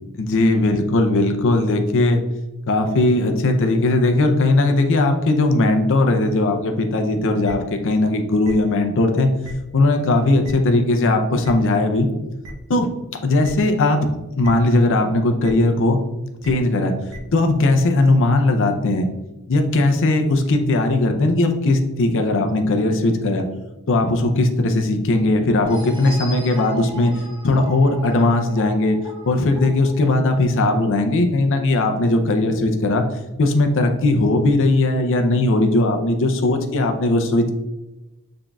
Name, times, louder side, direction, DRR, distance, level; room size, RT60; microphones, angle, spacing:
voice 1, 0.1-2.2 2.7-9.3 9.7-12.1 12.7-12.9 13.2-14.0 14.4-16.0 16.4-16.9 17.3-19.1 19.5-23.4 23.9-27.1 27.4-29.0 29.2-33.1 33.4-37.5, left 2 dB, 60° left, 5 dB, 0.5 m, -18 dB
sound 1, 7.4-7.5 8.4-8.5 9.4-9.5 10.4-10.5 11.4-11.5 12.4-12.5 13.4-13.5 14.4-14.5 15.4-15.5 16.4-16.5 17.1-17.2, right 1 dB, 75° right, 0.8 m, -36 dB
sound 2, 25.6-31.1, right 2 dB, 20° right, 0.7 m, -38 dB
5.8 x 3.7 x 2.3 m, 1.0 s
head